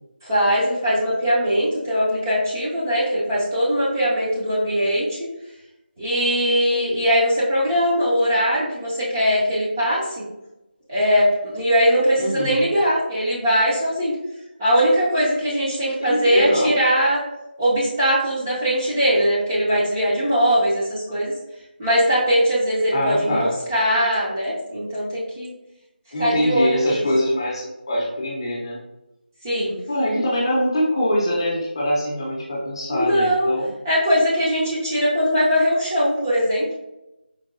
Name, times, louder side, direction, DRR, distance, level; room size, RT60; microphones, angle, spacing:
voice 1, 0.2-5.3 6.0-10.2 10.9-14.2 14.6-17.2 17.6-21.3 21.8-25.5 26.2-27.0 29.4-29.8 32.9-33.5 33.8-36.7, equal, 15° right, -8 dB, 0.5 m, -20 dB
voice 2, 12.2-12.6 16.0-16.7 22.9-23.6 26.1-28.8 29.9-33.7, left 1 dB, 25° left, -4 dB, 0.6 m, -23 dB
4.5 x 2.2 x 2.5 m, 0.93 s
figure-of-eight pair, 170°, 6 cm